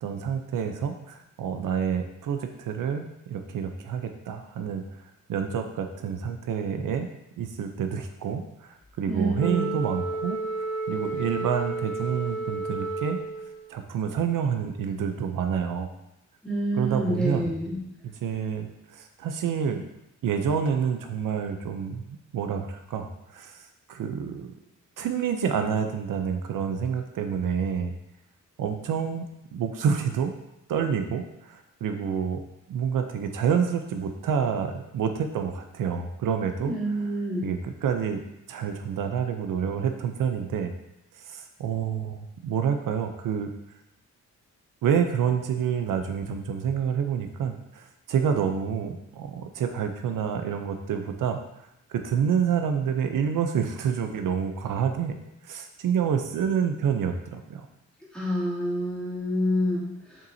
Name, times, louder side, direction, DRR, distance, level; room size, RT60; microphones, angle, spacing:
voice 1, 0.0-4.8 5.3-7.1 7.4-10.4 10.9-13.2 13.7-15.9 16.8-17.5 18.2-19.8 20.2-24.5 25.0-27.9 28.6-29.2 29.5-30.3 30.7-32.4 32.7-36.7 37.0-37.1 37.4-38.2 38.5-40.7 41.1-43.5 44.8-51.4 51.9-55.2 55.4-57.7, right 7 dB, 80° right, 6 dB, 0.6 m, -28 dB
voice 2, 9.1-9.7 16.4-17.8 36.7-37.5 58.1-60.2, equal, 5° left, -9 dB, 2.4 m, -28 dB
Wind instrument woodwind instrument, 9.4-13.7, right 3 dB, 35° left, 2.0 m, -32 dB
7.3 x 5.5 x 2.7 m, 0.86 s
wide cardioid pair, 160°, 32 cm